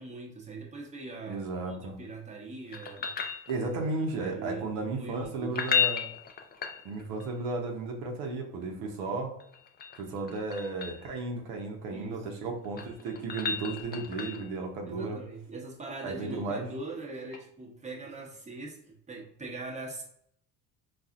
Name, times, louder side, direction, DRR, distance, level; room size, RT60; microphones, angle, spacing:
voice 1, 0.0-3.1 4.1-5.5 11.9-12.3 14.8-20.0, right 3 dB, 20° right, -1 dB, 0.9 m, -41 dB
voice 2, 1.3-2.0 3.5-6.1 6.8-9.3 10.0-15.2 16.0-16.7, right 3 dB, 80° right, 1 dB, 0.8 m, -34 dB
sound 1, 2.7-4.0 5.4-7.3 9.4-11.1 12.5-14.6 17.3-17.4, left 6 dB, 25° left, 0.4 m, -33 dB
4.1 x 2.4 x 2.4 m, 0.69 s
supercardioid pair, 95°, 37 cm